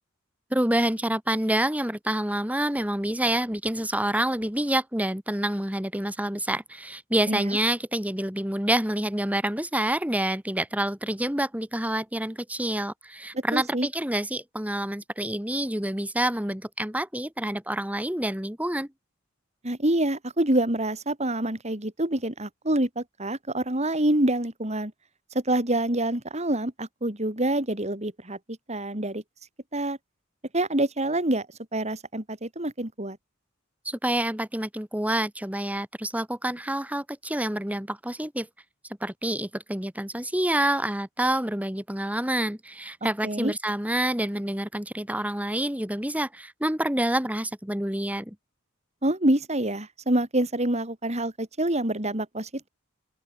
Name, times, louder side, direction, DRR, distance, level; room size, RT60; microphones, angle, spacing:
voice 1, 0.5-18.9 33.8-38.5 39.0-48.3, right 1 dB, 5° right, 2.9 m, -27 dB
voice 2, 7.3-7.6 13.3-13.9 19.6-24.9 25.3-28.4 28.7-29.2 29.7-30.0 30.5-31.5 31.7-33.2 43.2-43.5 49.0-52.7, right 1 dB, 35° right, 4.1 m, -26 dB
open air
head